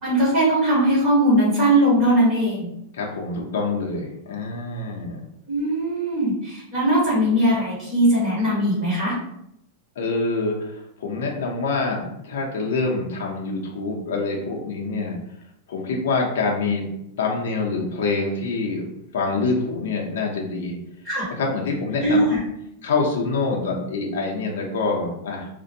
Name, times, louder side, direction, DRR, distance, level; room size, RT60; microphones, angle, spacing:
voice 1, 0.0-2.7 5.5-9.1 21.0-21.2 22.0-22.4, right 1 dB, 30° right, -9 dB, 1.3 m, -20 dB
voice 2, 2.9-5.2 10.0-15.2 15.7-16.9 17.2-18.9 19.1-20.7 21.4-22.3 22.8-25.5, left 3 dB, 75° left, -1 dB, 0.6 m, -26 dB
2.5 x 2.1 x 2.7 m, 0.78 s
supercardioid pair, 155°, 0 cm